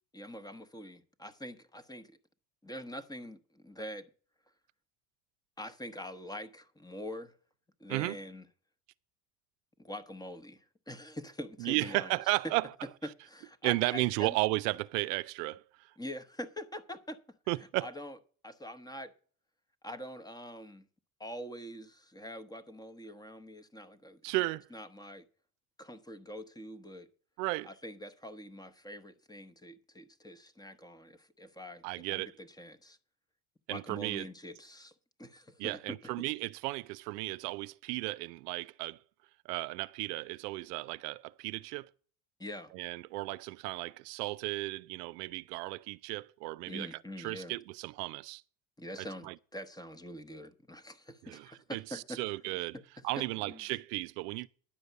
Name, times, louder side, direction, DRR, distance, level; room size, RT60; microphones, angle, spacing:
voice 1, 0.1-2.2 2.6-4.1 5.6-7.3 7.8-8.4 9.8-12.2 13.2-14.4 16.0-17.2 17.8-18.2 18.4-19.1 19.8-20.8 21.2-24.3 24.7-25.3 25.8-27.1 27.6-33.0 33.7-34.9 35.2-36.1 42.4-42.7 46.7-47.6 48.8-52.2 52.5-52.8 53.2-53.6, equal, 10° left, 0.9 m, -44 dB
voice 2, 11.6-12.7 13.6-15.9 17.5-17.9 24.2-24.7 27.4-27.7 31.8-32.3 33.7-34.3 35.6-39.0 39.4-41.9 42.7-48.4 49.0-49.3 51.2-52.8 53.0-54.5, right 21 dB, 90° right, 0.5 m, -34 dB
10.5 x 5.2 x 8.1 m
supercardioid pair, 100°, 46 cm